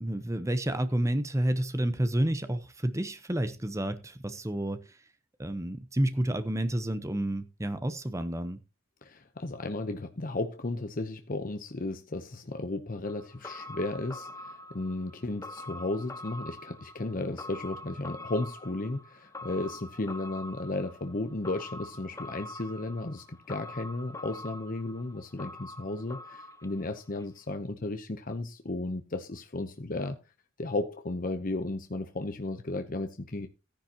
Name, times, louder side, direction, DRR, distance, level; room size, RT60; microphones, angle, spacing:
voice 1, 0.0-5.0 5.4-8.6, right 1 dB, 15° right, 0.8 m, -30 dB
voice 2, 9.0-30.2 30.6-33.5, left 2 dB, 40° left, 0.8 m, -34 dB
sound 1, 13.0-27.2 27.5-27.6, left 2 dB, 15° left, 1.1 m, -45 dB
14.5 x 10.5 x 2.9 m
head